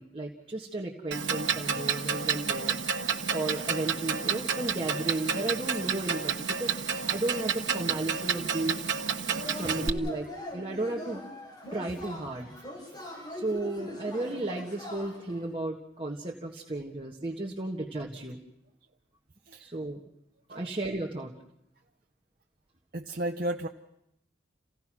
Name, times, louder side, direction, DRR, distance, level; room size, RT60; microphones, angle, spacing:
voice 1, 0.0-2.8 3.3-8.9 9.5-11.2 11.7-12.5 13.3-18.4 19.6-20.0 20.5-21.3, right 2 dB, 30° right, -1 dB, 1.5 m, -34 dB
Clock, 1.1-9.9, right 6 dB, 90° right, 1.3 m, -30 dB
Yell / Cheering, 9.3-15.4, left 1 dB, 25° left, 5.7 m, -41 dB
voice 2, 12.9-13.4 19.5-19.7 20.5-20.7 22.9-23.7, right 1 dB, 50° right, 3 dB, 0.8 m, -35 dB
29.0 x 16.5 x 6.2 m, 0.83 s
head